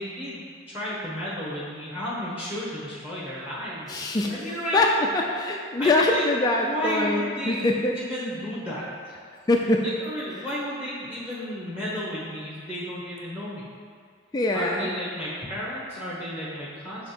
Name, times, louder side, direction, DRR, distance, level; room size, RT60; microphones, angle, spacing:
voice 1, 0.0-4.8 5.8-6.2 6.6-7.7 8.0-9.2 10.0-13.7 14.5-17.1, equal, 10° right, -7 dB, 1.1 m, -33 dB
voice 2, 3.9-8.0 9.5-9.8 10.4-10.5 14.3-14.9, left 2 dB, 20° left, 0 dB, 0.3 m, -24 dB
6.3 x 3.1 x 5.7 m, 2.1 s
head